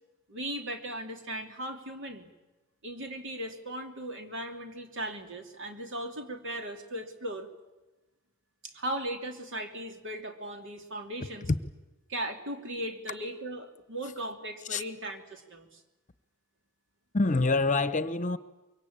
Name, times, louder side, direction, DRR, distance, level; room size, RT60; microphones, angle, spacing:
voice 1, 0.3-2.3 2.8-7.5 8.6-11.5 12.1-15.8, right 1 dB, 60° right, 3.0 m, -37 dB
voice 2, 17.1-18.4, left 3 dB, 35° left, 0.9 m, -26 dB
24.5 x 23.5 x 8.9 m
head